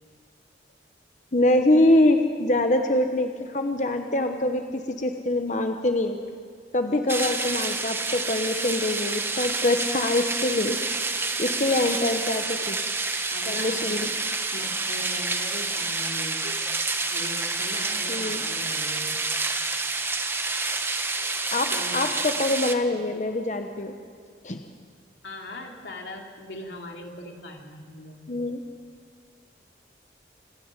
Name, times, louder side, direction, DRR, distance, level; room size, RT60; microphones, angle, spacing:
voice 1, 1.3-6.2 6.7-10.8 11.4-12.8 13.5-14.1 18.1-18.4 21.2-23.9 24.4-24.6 28.3-28.6, left 1 dB, 45° left, 5 dB, 1.0 m, -24 dB
sound 1, 7.1-22.7, right 3 dB, 15° right, 0.9 m, -28 dB
voice 2, 11.7-12.2 13.3-14.1 14.5-19.2 21.7-22.1 25.2-28.2, left 1 dB, 90° left, 1 dB, 2.8 m, -40 dB
27.0 x 9.9 x 9.8 m, 2.2 s
head